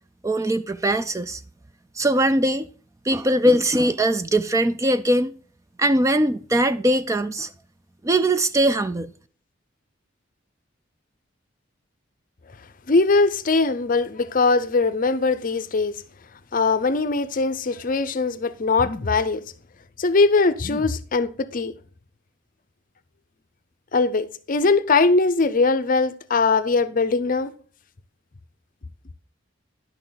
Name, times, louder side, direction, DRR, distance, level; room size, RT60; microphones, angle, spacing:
voice 1, 0.2-1.4 2.0-2.7 3.0-5.3 5.8-7.5 8.0-9.1, right 1 dB, 15° right, 0.3 m, -21 dB
voice 2, 12.9-16.0 16.5-19.4 20.0-21.7 23.9-27.5, left 3 dB, 45° left, 0.6 m, -21 dB
11.0 x 6.5 x 4.0 m
head